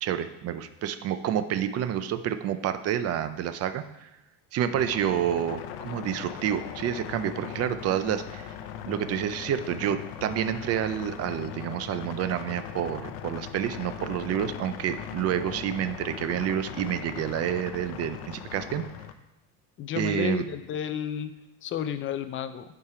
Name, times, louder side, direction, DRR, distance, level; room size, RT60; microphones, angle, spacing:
voice 1, 0.0-4.1 4.5-8.5 8.8-18.9 19.9-20.4, right 10 dB, 35° right, 11 dB, 0.4 m, -29 dB
sound 1, 4.7-19.1, left 10 dB, 75° left, 0.7 m, -39 dB
voice 2, 19.8-21.3 21.6-22.6, left 8 dB, 30° left, 11 dB, 0.4 m, -31 dB
8.6 x 4.7 x 4.8 m, 0.99 s
cardioid pair, 140°, 45 cm